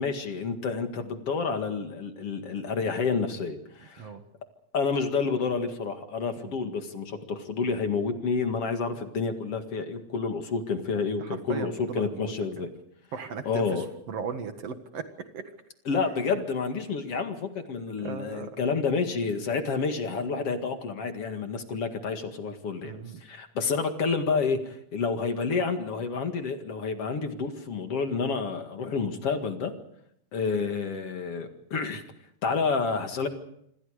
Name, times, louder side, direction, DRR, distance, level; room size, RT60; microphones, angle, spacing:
voice 1, 0.0-4.1 4.7-12.7 13.5-13.9 15.9-22.9 23.2-29.7 30.3-32.0 32.4-33.3, left 4 dB, 55° left, 6 dB, 2.8 m, -29 dB
voice 2, 11.2-12.6 13.1-15.0 15.3-15.4 18.0-18.5 22.8-23.2, right 5 dB, 60° right, 8 dB, 2.7 m, -37 dB
26.5 x 26.0 x 5.0 m, 0.72 s
omnidirectional pair, 3.4 m